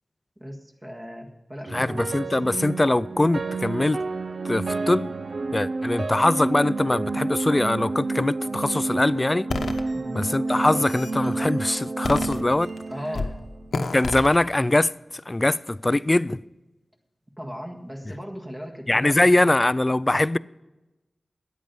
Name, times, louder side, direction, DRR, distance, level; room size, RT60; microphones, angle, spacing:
voice 1, 0.4-2.5 9.9-10.2 12.9-13.4 17.4-19.5, equal, 20° right, 1.7 m, -37 dB
voice 2, 1.7-4.0 4.4-5.1 5.5-9.5 10.1-12.7 13.9-14.9 15.3-16.4 18.9-20.4, left 2 dB, 25° left, 0.3 m, -22 dB
sound 1, 1.7-13.9, right 3 dB, 65° right, 0.4 m, -30 dB
sound 2, 9.5-9.8 10.5-11.2 12.0-12.8 13.1-13.4 13.7-14.3, left 3 dB, 90° left, 0.9 m, -29 dB
13.5 x 9.3 x 5.4 m
wide cardioid pair, 95°, 0 cm